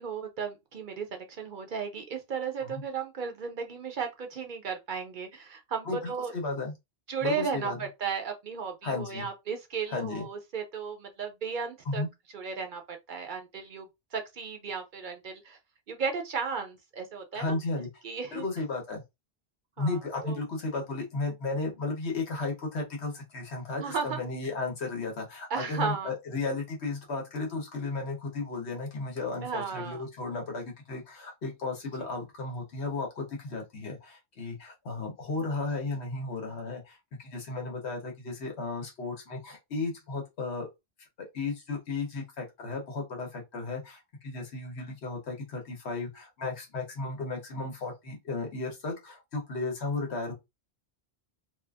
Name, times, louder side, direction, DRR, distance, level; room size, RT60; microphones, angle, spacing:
voice 1, 0.0-6.3 7.1-12.0 12.3-13.9 14.1-15.6 15.9-17.6 18.0-18.4 19.8-20.4 23.8-24.2 25.5-26.1 29.4-30.0, right 5 dB, 55° right, 0.6 m, -35 dB
voice 2, 5.9-6.7 7.2-7.8 8.8-9.3 9.9-10.3 11.9-12.1 17.3-17.9 18.3-19.0 19.8-40.7 41.3-50.3, left 3 dB, 90° left, 1.3 m, -34 dB
2.7 x 2.3 x 2.4 m
omnidirectional pair, 1.1 m